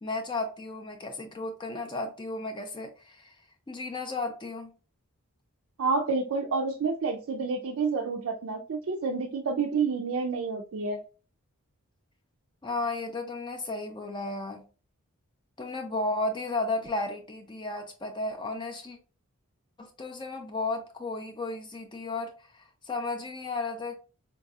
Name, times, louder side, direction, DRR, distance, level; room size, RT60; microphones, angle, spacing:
voice 1, 0.0-3.4 3.7-4.7 12.6-14.6 15.6-19.0 19.8-24.0, left 2 dB, 20° left, 0.4 m, -34 dB
voice 2, 5.8-11.0, right 4 dB, 65° right, 0.4 m, -29 dB
3.9 x 2.6 x 2.3 m
head